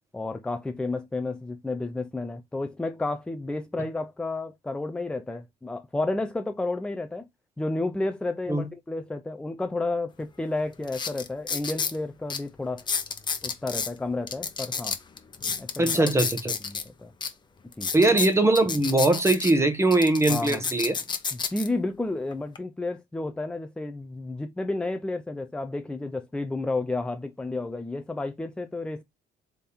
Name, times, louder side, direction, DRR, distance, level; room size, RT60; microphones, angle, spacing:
voice 1, 0.1-7.3 7.6-12.9 13.4-15.0 15.6-16.1 16.6-17.1 17.8-17.9 20.3-20.6 21.3-29.0, left 2 dB, 5° left, 0.4 m, -31 dB
sound 1, 10.2-10.3 10.8-12.0 12.3-12.4 12.8-13.9 14.3-16.8 17.2-17.3 17.7-19.5 19.9-21.7 22.3-22.6, left 5 dB, 25° left, 0.9 m, -30 dB
voice 2, 15.8-16.5 17.9-21.0, right 2 dB, 15° right, 1.1 m, -21 dB
3.5 x 3.4 x 4.2 m
cardioid pair, 110°, 17 cm